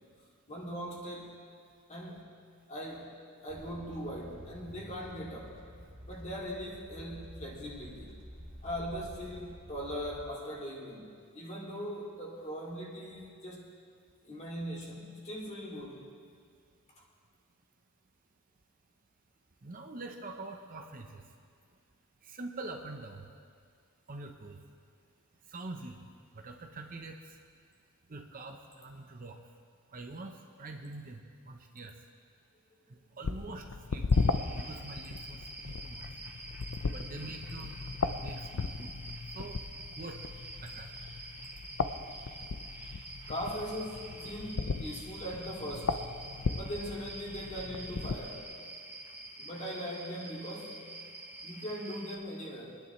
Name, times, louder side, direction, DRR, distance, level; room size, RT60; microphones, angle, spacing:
voice 1, 0.5-1.5 1.9-2.4 2.7-3.2 3.4-5.7 6.1-8.2 8.6-13.7 14.2-16.1 32.9-33.0 43.3-46.0 46.5-48.5 49.4-50.8 51.4-52.8, equal, 30° left, -4 dB, 2.5 m, -40 dB
sound 1, 3.5-10.3, equal, 60° right, 2.5 m, -49 dB
voice 2, 19.6-21.2 22.2-23.3 24.1-24.6 25.5-26.0 26.3-27.2 28.1-29.4 29.9-31.2 31.5-31.9 33.2-33.6 33.9-34.1 34.5-36.0 36.9-37.7 38.2-38.9 39.3-39.6 40.0-40.2 40.6-40.9, right 2 dB, 40° right, 3 dB, 0.8 m, -44 dB
sound 2, 33.2-48.2, left 4 dB, 70° left, 0.6 m, -36 dB
sound 3, 34.1-52.2, right 2 dB, 10° right, 1.3 m, -47 dB
25.5 x 10.5 x 3.2 m, 2.1 s
head